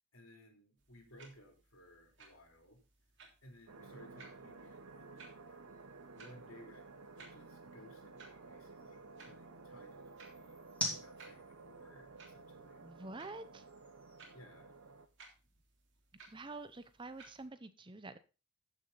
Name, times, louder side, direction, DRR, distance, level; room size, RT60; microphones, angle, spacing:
voice 1, 0.1-2.8 3.4-5.6 6.1-10.6 10.9-12.8 14.3-14.7, equal, 80° left, 2 dB, 3.4 m, -60 dB
sound 1, 0.8-17.5, right 4 dB, 55° right, 3.4 m, -62 dB
sound 2, 1.0-15.2, left 1 dB, 5° left, 2.9 m, -51 dB
sound 3, 3.7-15.1, right 3 dB, 80° right, 1.0 m, -54 dB
voice 2, 12.8-13.6 16.3-18.2, right 2 dB, 20° right, 12 dB, 0.6 m, -47 dB
14.0 x 6.4 x 4.0 m, 0.31 s
head